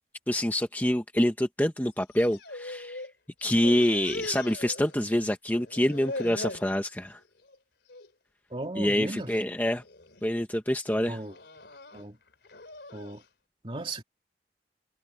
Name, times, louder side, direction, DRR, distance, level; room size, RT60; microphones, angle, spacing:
voice 1, 0.3-3.0 3.4-7.2 8.8-9.8 10.2-11.2, left 1 dB, 10° left, 0.9 m, -26 dB
sound 1, 2.0-3.1 3.4-5.3 5.6-6.7 7.2-7.6 7.9-8.1 8.9-9.3 9.8-10.2 11.0-13.2, left 2 dB, 80° left, 3.2 m, -41 dB
voice 2, 8.5-9.3 11.1-11.3 11.9-12.2 12.9-13.2 13.6-14.0, right 2 dB, 30° right, 2.6 m, -36 dB
head